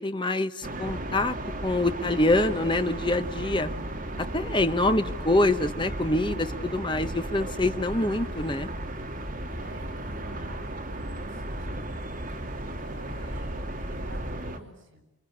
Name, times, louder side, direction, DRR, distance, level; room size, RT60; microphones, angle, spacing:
voice 1, 0.0-1.4 1.6-3.7 4.2-8.7, left 2 dB, 25° left, 9 dB, 1.2 m, -25 dB
sound 1, 0.6-14.6, right 1 dB, 40° right, 3.0 m, -35 dB
voice 2, 9.5-11.9 12.3-15.1, right 2 dB, 65° right, 6 dB, 7.9 m, -49 dB
28.0 x 24.5 x 8.6 m, 0.90 s
head